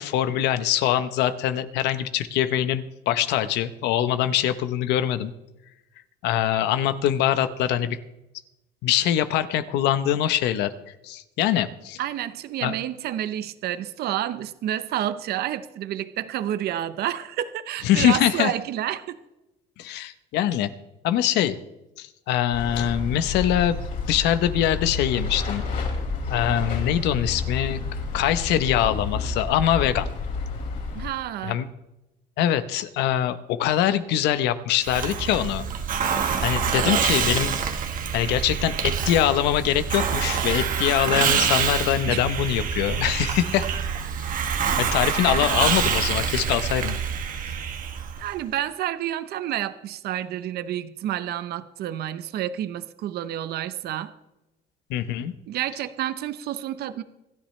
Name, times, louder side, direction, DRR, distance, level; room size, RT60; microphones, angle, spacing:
voice 1, 0.0-5.3 6.2-8.0 8.8-10.7 11.0-12.0 12.6-12.7 17.8-18.5 19.8-20.7 21.0-21.6 22.0-25.6 26.3-27.8 28.1-30.1 31.4-31.7 32.4-35.7 36.4-37.6 38.1-43.7 44.3-44.4 44.8-47.0 54.9-55.3, left 11 dB, 85° left, 12 dB, 0.9 m, -23 dB
voice 2, 12.0-19.2 30.9-31.6 42.1-42.2 48.2-54.1 55.5-57.0, right 12 dB, 70° right, 13 dB, 0.8 m, -29 dB
sound 1, 22.5-31.1, left 4 dB, 60° left, 5.6 m, -30 dB
Hiss, 34.8-48.3, right 7 dB, 55° right, 1.4 m, -26 dB
26.5 x 10.5 x 3.2 m, 0.96 s
cardioid pair, 110°, 17 cm